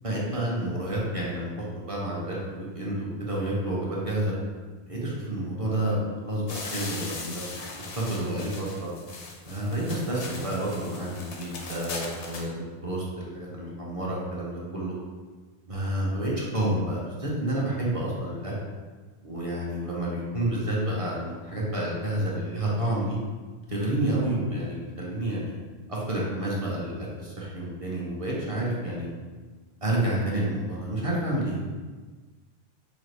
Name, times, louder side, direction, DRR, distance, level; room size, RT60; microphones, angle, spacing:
voice 1, 0.0-4.3 4.9-8.9 9.5-15.0 15.7-18.5 19.2-23.2 23.7-25.5 25.9-29.1 29.8-31.6, right 1 dB, 35° right, -5 dB, 0.7 m, -29 dB
sound 1, 6.5-12.5, left 3 dB, 85° left, 1.0 m, -39 dB
5.0 x 2.2 x 3.2 m, 1.4 s
omnidirectional pair, 1.1 m